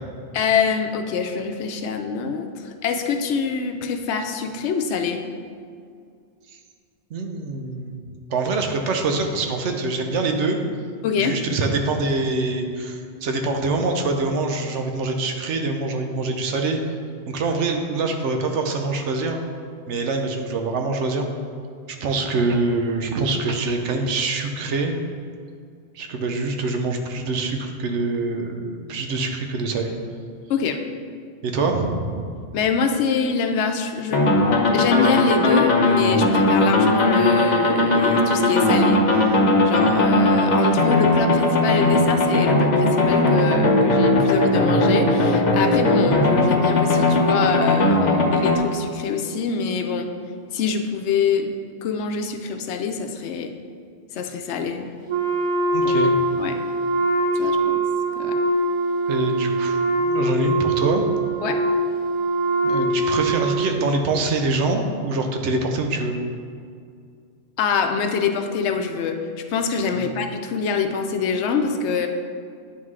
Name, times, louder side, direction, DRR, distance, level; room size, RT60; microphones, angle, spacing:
voice 1, 0.3-5.2 11.0-11.4 30.5-30.8 32.5-34.3 34.7-50.1 50.5-51.5 51.8-53.5 54.1-54.9 55.8-56.1 56.4-56.6 57.4-57.8 58.1-58.4 61.4-61.6 67.6-69.2 69.5-72.1, left 5 dB, 75° left, 5 dB, 0.8 m, -25 dB
voice 2, 7.1-8.0 8.3-10.6 11.2-16.8 17.3-19.4 19.9-21.3 21.9-24.9 25.9-30.0 31.4-32.4 55.7-56.2 59.1-61.1 62.6-66.2 70.0-70.1, right 3 dB, 80° right, 4 dB, 0.9 m, -25 dB
sound 1, 34.1-48.6, left 2 dB, 45° left, 0.7 m, -18 dB
Wind instrument woodwind instrument, 55.1-63.9, right 1 dB, 35° right, 0.6 m, -22 dB
9.3 x 3.7 x 3.2 m, 2.2 s
omnidirectional pair, 1.2 m